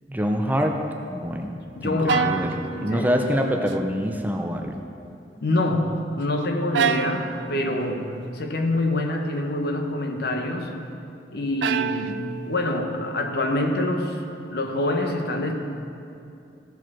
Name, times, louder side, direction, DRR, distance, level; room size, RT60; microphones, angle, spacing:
voice 1, 0.1-0.8 1.1-1.5 1.8-4.8, equal, 10° right, 3 dB, 0.5 m, -25 dB
voice 2, 1.7-2.4 2.7-3.1 5.4-10.7 11.3-14.2 14.5-15.5, left 1 dB, 60° left, 3 dB, 0.9 m, -26 dB
sound 1, 2.1-3.7 4.1-4.6 6.7-8.0 11.6-12.7, right 7 dB, 80° right, 0.4 m, -28 dB
14.0 x 4.9 x 6.0 m, 2.6 s
head